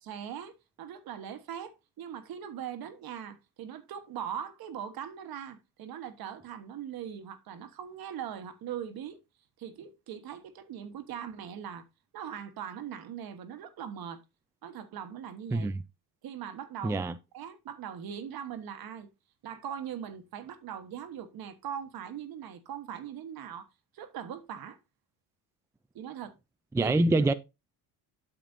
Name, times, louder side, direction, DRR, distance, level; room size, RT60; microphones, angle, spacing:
voice 1, 0.0-9.2 9.6-11.8 12.1-14.2 14.6-15.7 16.2-17.0 17.3-19.1 19.4-23.7 23.9-24.8 25.9-26.3 26.8-27.0, right 9 dB, 60° right, 1.3 m, -40 dB
voice 2, 16.8-17.1 26.7-27.3, right 2 dB, 5° right, 0.4 m, -25 dB
9.0 x 6.8 x 2.6 m
supercardioid pair, 85°, 40 cm